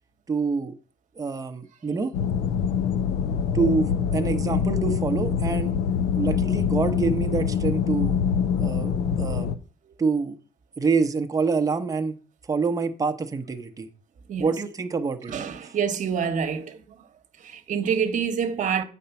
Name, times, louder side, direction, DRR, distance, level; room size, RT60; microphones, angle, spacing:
voice 1, 0.3-0.8 1.2-2.2 3.5-5.7 6.1-8.1 8.6-9.5 10.0-10.4 10.8-12.2 12.5-13.9 14.4-15.3 15.6-15.7, right 4 dB, 20° right, 0.8 m, -26 dB
sound 1, 2.1-9.5, left 7 dB, 75° left, 0.7 m, -24 dB
voice 2, 15.3-16.8 17.4-18.8, right 7 dB, 50° right, 1.1 m, -26 dB
8.6 x 4.3 x 6.9 m
cardioid pair, 110°, 17 cm